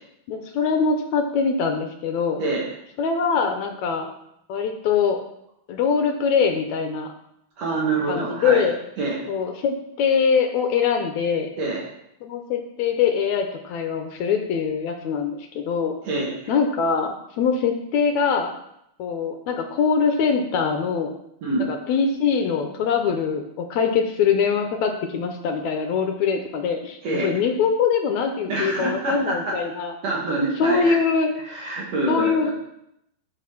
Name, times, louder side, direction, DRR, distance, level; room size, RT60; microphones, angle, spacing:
voice 1, 0.3-2.4 3.0-4.1 4.5-5.2 5.7-7.1 8.1-8.8 9.3-11.5 12.2-15.9 16.5-18.5 19.0-21.1 21.6-29.9 30.6-31.3 32.1-32.5, left 6 dB, 75° left, 4 dB, 1.7 m, -23 dB
voice 2, 7.6-8.7 9.0-9.2 11.6-11.8 16.0-16.3 21.4-21.6 27.0-27.3 28.5-29.6 30.0-31.0 31.5-32.5, right 2 dB, 50° right, -3 dB, 2.8 m, -26 dB
10.5 x 5.0 x 5.9 m, 0.79 s
omnidirectional pair, 4.1 m